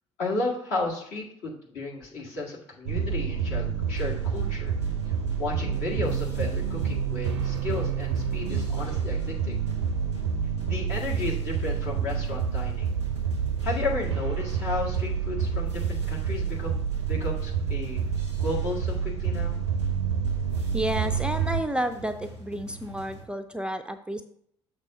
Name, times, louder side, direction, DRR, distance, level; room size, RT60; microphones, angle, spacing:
voice 1, 0.2-4.7 5.1-9.6 10.7-12.9 13.6-18.0 18.4-19.6, left 3 dB, 60° left, -3 dB, 1.9 m, -33 dB
sound 1, 2.9-21.6, right 7 dB, 80° right, 0.5 m, -28 dB
sound 2, 4.0-23.2, right 2 dB, 90° left, 1.2 m, -45 dB
voice 2, 20.7-24.2, right 1 dB, 5° right, 8 dB, 0.4 m, -31 dB
6.7 x 3.4 x 6.1 m, 0.68 s
figure-of-eight pair, 55°, 14 cm